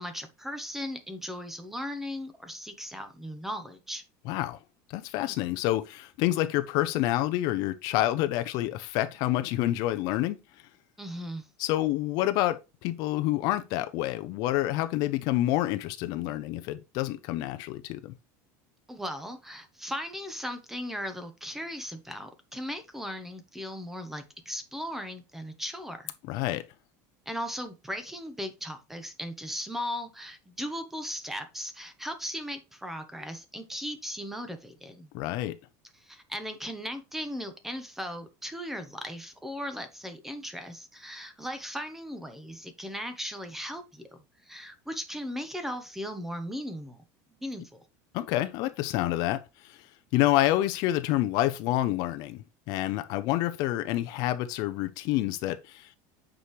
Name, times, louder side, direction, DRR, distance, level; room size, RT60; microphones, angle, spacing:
voice 1, 0.0-4.0 11.0-11.5 18.9-26.1 27.3-35.1 35.9-44.1 44.4-47.0 47.4-47.8, equal, 5° right, 0.8 m, -37 dB
voice 2, 4.3-4.6 4.9-10.4 11.6-12.6 12.8-18.1 26.3-26.6 35.1-35.5 48.1-49.8 50.1-56.0, left 15 dB, 45° left, 0.6 m, -28 dB
8.2 x 5.0 x 3.1 m
cardioid pair, 175°, 9 cm